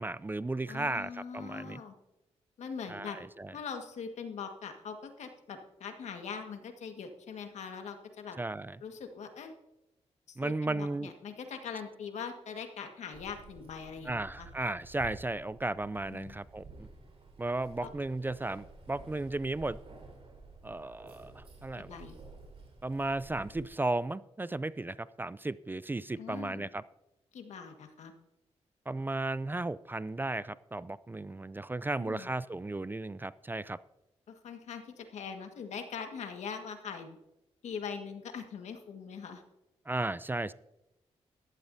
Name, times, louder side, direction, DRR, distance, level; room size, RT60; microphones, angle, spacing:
voice 1, 0.0-1.8 2.9-3.1 3.4-3.5 8.4-8.8 10.4-11.1 14.1-16.9 17.4-19.8 20.6-22.0 22.8-26.8 28.9-33.8 39.9-40.5, right 2 dB, 15° right, 17 dB, 0.4 m, -35 dB
voice 2, 0.7-2.0 2.6-3.2 3.5-8.4 8.8-9.5 10.3-14.5 16.1-16.4 17.8-17.9 21.7-22.2 26.2-26.7 27.3-28.1 32.0-32.3 34.3-37.2 37.6-39.4, left 6 dB, 80° left, 6 dB, 1.6 m, -42 dB
Keys jangling, 13.1-23.6, right 3 dB, 55° right, 4.2 m, -52 dB
15.0 x 12.0 x 2.7 m, 0.91 s
cardioid pair, 75°, 12 cm